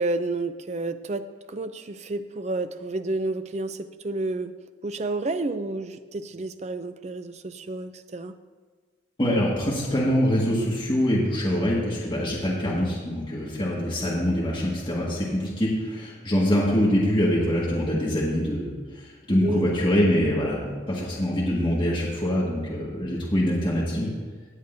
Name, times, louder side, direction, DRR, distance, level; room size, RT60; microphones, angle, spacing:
voice 1, 0.0-4.5 4.8-8.3 19.4-19.7, right 2 dB, 35° right, 10 dB, 0.4 m, -30 dB
voice 2, 9.2-18.7 18.9-24.1, equal, 25° left, -6 dB, 1.7 m, -24 dB
18.5 x 8.0 x 2.7 m, 1.5 s
head